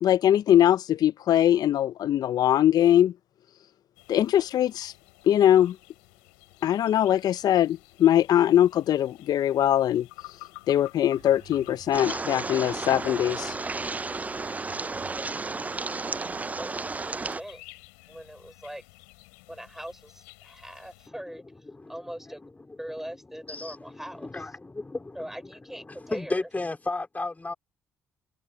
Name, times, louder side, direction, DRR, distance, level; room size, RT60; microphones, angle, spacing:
voice 1, 0.0-3.1 4.1-4.9 5.2-5.8 6.6-10.1 10.7-13.6, left 11 dB, 60° left, 0.5 m, -21 dB
sound 1, 4.0-21.1, left 31 dB, 85° left, 5.0 m, -51 dB
sound 2, 11.2-17.5, right 11 dB, 65° right, 7.2 m, -52 dB
sound 3, 11.9-17.4, right 3 dB, 20° right, 0.4 m, -33 dB
voice 2, 15.7-17.6 18.1-18.8 19.5-21.4 21.9-22.4 22.8-24.5 25.1-26.5, equal, 5° right, 5.8 m, -41 dB
voice 3, 23.5-25.3 25.8-27.5, left 2 dB, 20° left, 3.0 m, -34 dB
hypercardioid pair, 50°, 8 cm